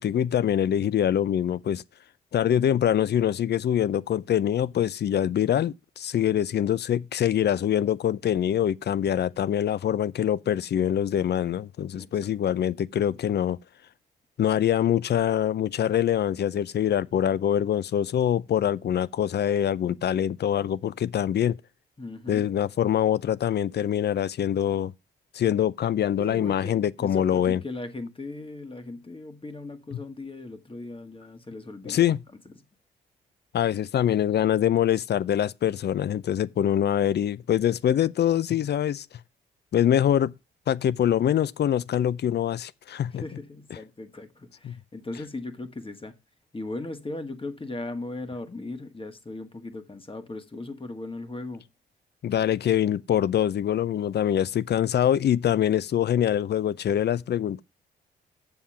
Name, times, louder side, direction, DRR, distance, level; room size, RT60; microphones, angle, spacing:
voice 1, 0.0-1.8 2.3-13.6 14.4-21.6 22.3-24.9 25.3-27.6 31.9-32.2 33.5-39.1 39.7-40.3 40.7-43.2 44.6-44.8 52.2-57.6, left 10 dB, 55° left, 0.6 m, -24 dB
voice 2, 11.9-12.6 22.0-22.5 26.2-32.1 43.1-46.1 46.5-51.6, left 2 dB, 25° left, 1.8 m, -38 dB
7.3 x 7.1 x 5.7 m
supercardioid pair, 50°, 20 cm